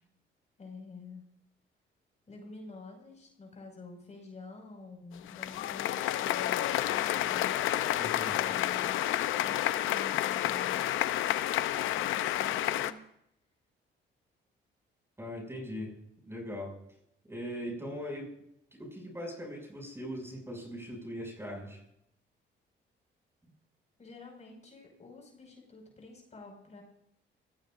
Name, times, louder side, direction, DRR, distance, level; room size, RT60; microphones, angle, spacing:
voice 1, 0.6-1.2 2.3-7.6 8.4-9.1 9.4-11.0 11.8-13.1 24.0-26.8, left 3 dB, 35° left, 1 dB, 5.6 m, -48 dB
sound 1, 5.2-12.9, left 13 dB, 85° left, 0.7 m, -30 dB
voice 2, 7.9-8.4 15.2-15.9 16.3-16.7 17.2-18.3 18.7-21.8, equal, 10° right, 1 dB, 6.6 m, -40 dB
25.5 x 17.0 x 2.6 m, 0.74 s
cardioid pair, 90°, 20 cm